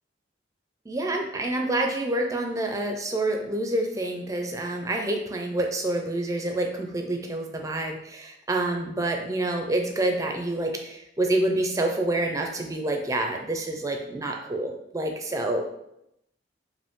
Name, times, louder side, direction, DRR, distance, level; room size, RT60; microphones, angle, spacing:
voice 1, 0.9-15.7, right 1 dB, 20° right, 3 dB, 0.4 m, -27 dB
5.1 x 2.6 x 3.6 m, 0.82 s
head